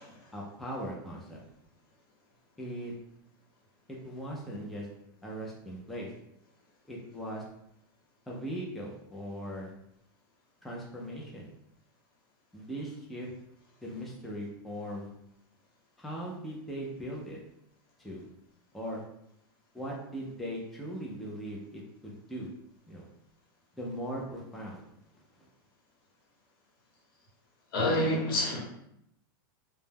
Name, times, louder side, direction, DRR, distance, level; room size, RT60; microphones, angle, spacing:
voice 1, 0.3-1.4 2.6-2.9 3.9-4.9 5.2-6.1 6.9-7.4 8.3-9.7 10.6-11.5 12.5-13.3 13.8-15.1 16.0-17.4 18.0-18.3 18.7-19.0 19.7-22.5 22.9-23.1 23.7-24.8 25.4-25.5, equal, ahead, -4 dB, 0.3 m, -39 dB
voice 2, 27.7-28.6, left 1 dB, 75° left, -2 dB, 1.0 m, -28 dB
2.1 x 2.0 x 3.3 m, 0.78 s
supercardioid pair, 150°, 12 cm